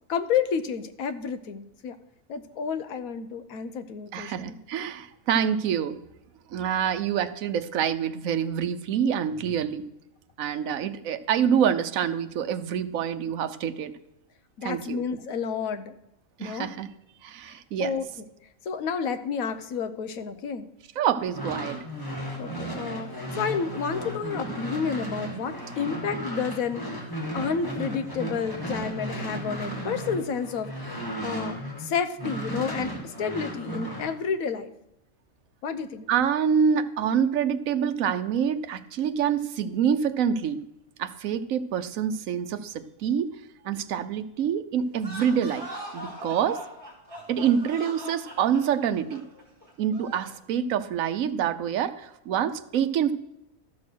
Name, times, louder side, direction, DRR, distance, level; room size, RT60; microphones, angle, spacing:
voice 1, 0.1-1.9 2.3-4.6 14.6-15.9 16.4-16.7 17.5-18.0 18.7-20.7 22.4-26.8 27.3-34.7 35.6-36.0, left 6 dB, 85° left, 11 dB, 1.2 m, -30 dB
voice 2, 4.1-6.0 6.5-9.8 10.4-13.9 14.6-15.0 16.4-16.9 17.2-17.9 21.0-21.8 36.1-40.6 41.0-43.3 43.6-45.7 45.9-46.6 47.3-49.2 49.8-53.1, right 8 dB, 75° right, 10 dB, 1.1 m, -26 dB
sound 1, 21.2-31.9 32.2-34.1, right 1 dB, 15° left, 2.0 m, -35 dB
sound 2, 44.9-50.4, equal, 35° right, 4.0 m, -41 dB
13.0 x 6.4 x 6.2 m, 0.88 s
omnidirectional pair, 1.4 m